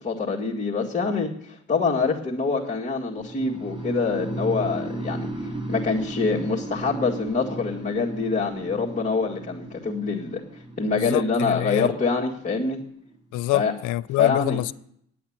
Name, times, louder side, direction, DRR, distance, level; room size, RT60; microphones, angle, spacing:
voice 1, 0.0-12.8 13.5-13.7 14.1-14.6, left 4 dB, 25° left, 2.0 m, -25 dB
sound 1, 3.2-13.1, right 2 dB, 20° right, 1.5 m, -35 dB
voice 2, 11.1-11.9 13.3-14.7, left 18 dB, 85° left, 0.5 m, -25 dB
9.9 x 8.4 x 8.7 m
cardioid pair, 90°, 30 cm